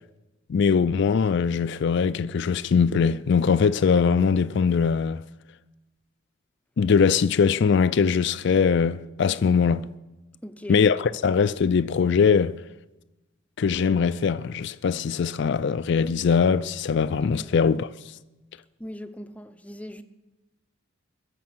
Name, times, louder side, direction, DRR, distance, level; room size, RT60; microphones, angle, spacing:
voice 1, 0.5-5.2 6.8-9.9 10.7-12.6 13.6-17.9, left 6 dB, 60° left, 0.4 m, -21 dB
voice 2, 10.4-10.8 17.3-17.5 18.8-20.0, equal, 5° left, 0.6 m, -39 dB
21.5 x 7.5 x 6.1 m
head